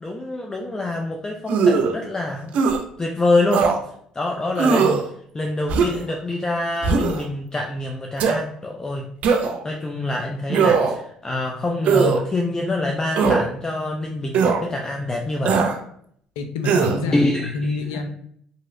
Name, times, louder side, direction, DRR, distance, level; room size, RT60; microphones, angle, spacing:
voice 1, 0.0-2.5 3.0-3.6 4.1-5.0 5.3-15.7 17.1-17.8, left 2 dB, 25° left, 1 dB, 0.4 m, -26 dB
sound 1, 1.5-1.9 2.5-2.8 3.5-3.8 4.6-5.0 5.7-6.1 6.8-7.2 8.2-8.4 9.2-9.6 10.5-11.0 11.8-12.2 13.2-13.4 14.3-14.6 15.5-15.8 16.6-17.0, right 5 dB, 65° right, 0.5 m, -19 dB
voice 2, 16.4-18.1, left 3 dB, 85° left, 6 dB, 0.4 m, -27 dB
2.9 x 2.7 x 2.6 m, 0.65 s
supercardioid pair, 70°, 3 cm